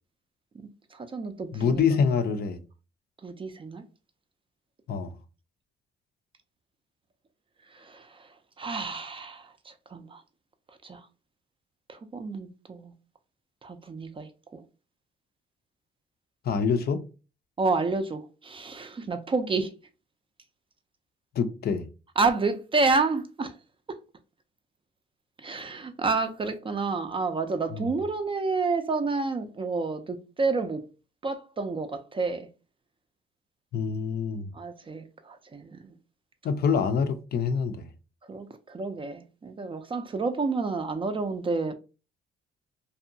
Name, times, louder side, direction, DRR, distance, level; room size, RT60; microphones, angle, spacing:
voice 1, 0.6-1.8 3.2-3.8 7.7-10.2 10.8-11.1 11.9-12.9 13.6-14.6 17.6-19.7 22.2-23.5 25.4-30.8 31.2-32.5 34.5-35.9 38.2-41.7, right 3 dB, 25° right, 0.4 m, -30 dB
voice 2, 1.5-2.6 4.9-5.1 16.4-17.0 21.3-21.9 27.7-27.9 33.7-34.5 36.4-37.9, left 6 dB, 50° left, 0.4 m, -26 dB
2.7 x 2.2 x 2.6 m
cardioid pair, 90°, 20 cm